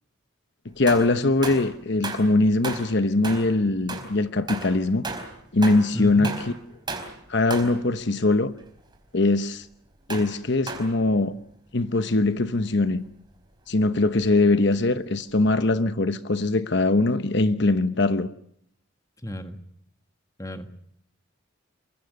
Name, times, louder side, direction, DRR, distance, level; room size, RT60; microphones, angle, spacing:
voice 1, 0.6-5.0 5.5-6.3 7.3-8.5 9.1-9.7 10.1-11.3 11.7-13.0 13.7-18.3, left 2 dB, 55° left, 1.0 m, -22 dB
sound 1, 0.9-1.8 2.0-2.4 2.6-3.6 3.9-6.0 6.2-6.6 6.9-7.2 7.5-7.9 8.4-8.6 10.1-10.4 10.7-11.0 12.0-12.1 12.3-12.4 15.6-15.7, right 3 dB, 20° right, 4.4 m, -34 dB
voice 2, 5.9-6.3 19.2-19.6 20.4-20.7, equal, 15° left, 1.6 m, -32 dB
27.5 x 24.0 x 6.5 m
head